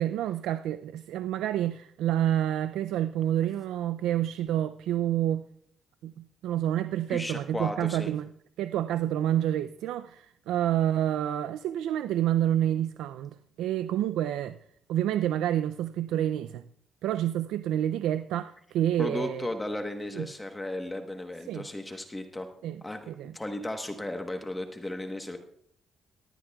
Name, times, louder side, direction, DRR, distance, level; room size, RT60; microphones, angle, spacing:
voice 1, 0.0-5.4 6.0-8.3 8.6-14.6 14.9-16.6 17.0-19.5 20.1-20.3 21.5-21.7 22.6-23.3, right 11 dB, 90° right, 0.3 m, -28 dB
voice 2, 7.1-8.1 19.0-22.5 22.8-25.4, left 1 dB, 15° left, 1.1 m, -35 dB
18.0 x 12.0 x 2.3 m
cardioid pair, 90°, 0 cm